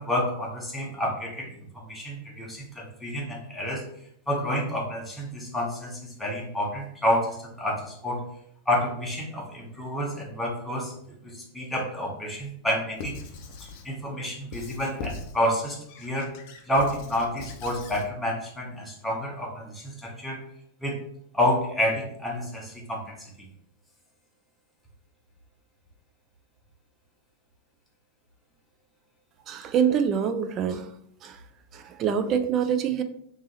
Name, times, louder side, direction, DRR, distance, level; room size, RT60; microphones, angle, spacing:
voice 1, 0.0-3.8 4.3-8.2 8.7-13.2 13.6-16.3 16.7-20.4 20.8-21.0 21.3-23.3, equal, 5° left, -3 dB, 0.9 m, -29 dB
Squeak / Writing, 13.0-13.9 14.5-15.4 15.9-18.1, left 3 dB, 45° left, 0.5 m, -40 dB
voice 2, 29.5-30.9 31.2-31.4 31.7-33.0, right 8 dB, 35° right, 9 dB, 0.3 m, -25 dB
3.5 x 2.9 x 2.9 m, 0.71 s
figure-of-eight pair, 90°, 0 cm